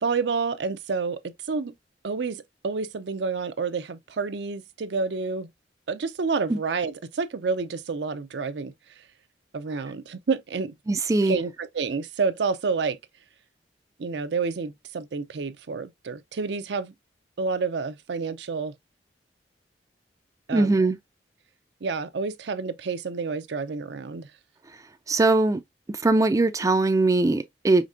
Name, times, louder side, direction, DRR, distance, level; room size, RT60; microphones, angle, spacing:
voice 1, 0.0-1.7 2.0-5.5 5.9-8.7 9.5-10.7 11.2-13.0 14.0-16.9 17.4-18.7 20.5-20.8 21.8-24.3, right 4 dB, 70° right, 0.5 m, -29 dB
voice 2, 10.9-11.4 20.5-21.0 25.1-25.6 25.9-27.9, right 2 dB, 20° right, 0.3 m, -21 dB
5.1 x 3.2 x 2.5 m
head